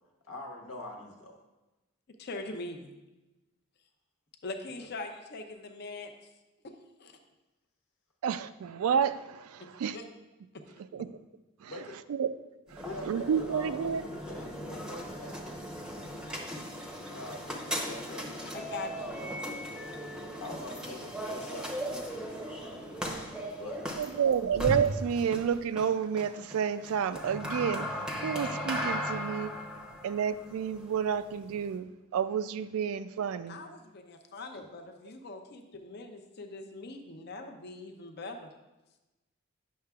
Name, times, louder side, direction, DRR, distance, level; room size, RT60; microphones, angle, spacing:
voice 1, 0.2-1.4 4.8-4.9 11.7-12.0 12.8-15.4 17.1-18.5 18.9-19.5 20.4-23.1 23.6-23.8 34.5-34.7, left 1 dB, 85° left, 0 dB, 1.3 m, -44 dB
voice 2, 2.2-2.9 4.4-6.1 7.0-7.2 9.6-9.7 9.9-10.0 18.5-18.9 33.5-38.5, left 3 dB, 50° left, 5 dB, 0.5 m, -42 dB
voice 3, 8.2-10.0 10.9-11.1 11.6-11.7 12.1-12.3 12.7-14.1 24.0-29.5 30.0-33.6, right 7 dB, 80° right, 14 dB, 0.3 m, -30 dB
sound 1, 12.7-31.8, equal, 5° right, 0.6 m, -38 dB
9.3 x 6.5 x 2.3 m, 1.1 s
head